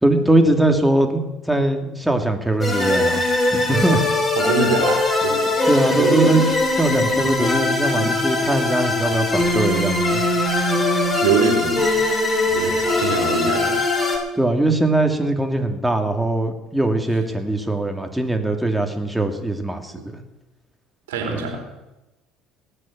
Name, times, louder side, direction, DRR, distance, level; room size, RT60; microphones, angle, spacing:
voice 1, 0.0-4.0 5.7-10.2 14.3-19.9 21.3-21.4, right 2 dB, 5° right, 4 dB, 2.7 m, -21 dB
sound 1, 2.6-14.2, left 2 dB, 20° left, 6.3 m, -21 dB
voice 2, 4.4-5.5 6.0-6.4 8.0-8.1 11.2-11.9 12.5-13.8 20.1-20.2 21.1-21.6, right 4 dB, 85° right, 2 dB, 3.6 m, -23 dB
19.0 x 6.6 x 8.8 m, 0.99 s
hypercardioid pair, 65°, 0 cm